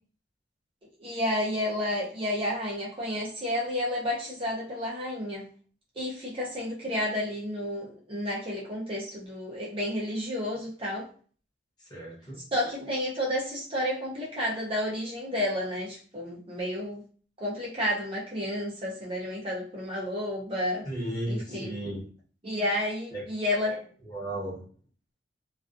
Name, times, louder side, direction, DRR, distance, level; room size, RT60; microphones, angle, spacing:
voice 1, 1.0-5.5 6.0-11.1 12.5-17.0 17.4-20.9 21.3-21.7 22.4-23.9, left 1 dB, 30° right, -5 dB, 0.6 m, -31 dB
voice 2, 11.9-12.4 20.8-22.0 23.1-23.2 24.1-24.7, right 1 dB, 25° left, -6 dB, 1.0 m, -34 dB
2.3 x 2.3 x 2.5 m, 0.42 s
head